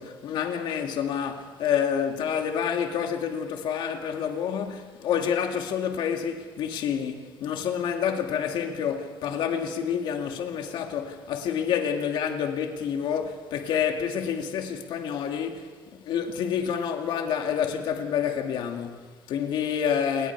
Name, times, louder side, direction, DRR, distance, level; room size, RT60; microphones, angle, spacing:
voice 1, 0.0-20.3, left 8 dB, 80° left, 2.4 m, -28 dB
28.5 x 22.0 x 4.8 m
cardioid pair, 130°, 8 cm